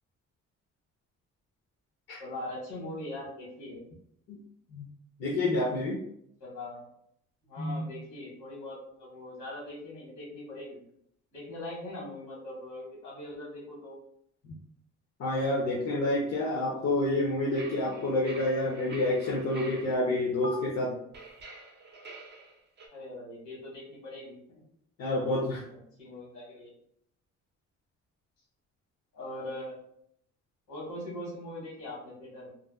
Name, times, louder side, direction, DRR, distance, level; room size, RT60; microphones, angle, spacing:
voice 1, 2.2-3.8 6.4-6.8 7.4-10.8 11.3-14.0 22.9-24.6 26.0-26.7 29.1-29.8 30.7-32.5, left 1 dB, 80° left, -4 dB, 1.4 m, -41 dB
voice 2, 5.2-6.0 7.6-7.9 14.4-14.6 15.2-21.0 25.0-25.6, left 1 dB, 55° left, -4 dB, 0.7 m, -28 dB
sound 1, 17.5-19.9 20.4-20.5 21.1-22.9, right 2 dB, 35° right, 0.5 m, -46 dB
2.5 x 2.2 x 2.3 m, 0.70 s
cardioid pair, 90°, 30 cm